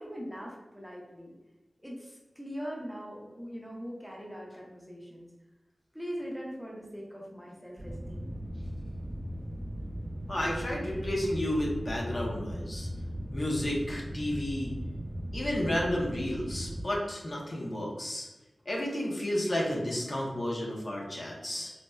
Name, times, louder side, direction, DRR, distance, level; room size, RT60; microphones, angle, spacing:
voice 1, 0.0-1.3 1.8-5.3 5.9-8.3, equal, ahead, -3 dB, 0.8 m, -41 dB
sound 1, 7.8-16.8, equal, 55° right, 0.6 m, -38 dB
voice 2, 10.3-12.9 13.3-14.7 15.3-18.3 18.7-21.7, left 1 dB, 55° left, -3 dB, 0.7 m, -32 dB
4.1 x 2.0 x 2.3 m, 1.1 s
cardioid pair, 50°, 0 cm